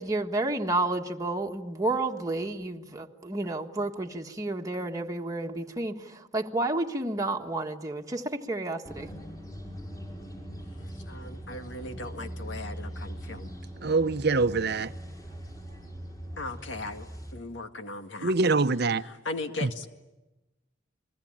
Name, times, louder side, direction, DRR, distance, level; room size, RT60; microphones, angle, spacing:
voice 1, 0.0-9.1, right 2 dB, 20° right, 1.5 m, -31 dB
sound 1, 8.8-17.3, equal, 20° left, 5.3 m, -41 dB
voice 2, 11.1-13.5 16.4-18.3 19.3-19.9, left 2 dB, 75° left, 2.1 m, -38 dB
voice 3, 13.8-14.9 18.2-19.0 19.6-19.7, right 3 dB, 60° right, 0.9 m, -24 dB
30.0 x 21.0 x 8.8 m
head